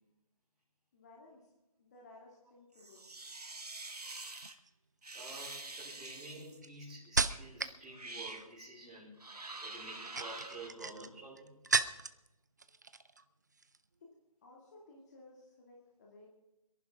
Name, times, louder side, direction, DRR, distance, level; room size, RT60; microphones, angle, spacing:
voice 1, 0.9-1.4 1.8-3.1 14.0-14.1 14.4-16.3, left 2 dB, 25° left, -3 dB, 2.5 m, -57 dB
sound 1, 2.8-4.5 5.0-6.6 7.3-7.4 7.9-8.5 9.2-10.7, right 2 dB, 80° right, 1.6 m, -46 dB
sound 2, 4.3-4.7 5.4-7.8 8.1-8.6 9.9-12.3 12.6-13.2 13.5-13.8, right 4 dB, 30° right, 0.4 m, -36 dB
voice 2, 5.1-9.2 9.6-11.6, right 2 dB, ahead, -11 dB, 4.1 m, -49 dB
27.5 x 11.0 x 3.7 m, 0.96 s
figure-of-eight pair, 160°, 20 cm